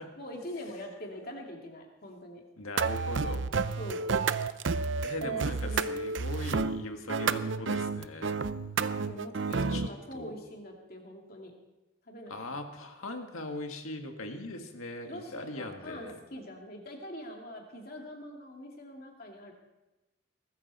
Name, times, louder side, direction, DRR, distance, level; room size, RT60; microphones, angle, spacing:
voice 1, 0.2-2.4 3.8-4.0 5.2-5.9 9.0-11.5 12.1-12.6 15.1-19.5, equal, 45° left, 1 dB, 2.6 m, -43 dB
voice 2, 2.6-3.5 5.0-8.4 8.8-9.0 9.5-9.9 10.1-10.3 12.3-16.2, left 2 dB, 90° left, 4 dB, 1.9 m, -40 dB
sound 1, 2.8-9.9, right 4 dB, 60° right, 0.6 m, -30 dB
20.5 x 14.0 x 4.3 m, 1.0 s
head